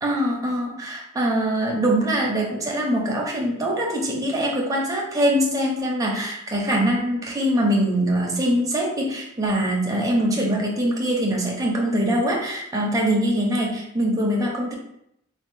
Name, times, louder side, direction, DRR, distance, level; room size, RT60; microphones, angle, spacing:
voice 1, 0.0-14.7, equal, 15° right, -2 dB, 0.7 m, -23 dB
3.6 x 2.2 x 4.3 m, 0.77 s
head